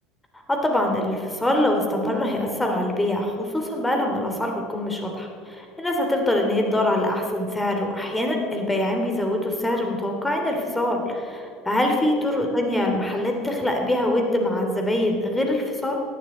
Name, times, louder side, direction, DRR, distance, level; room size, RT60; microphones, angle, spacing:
voice 1, 0.5-16.0, left 1 dB, 10° left, 2 dB, 3.2 m, -24 dB
18.5 x 11.5 x 4.4 m, 2.5 s
hypercardioid pair, 70°, 0 cm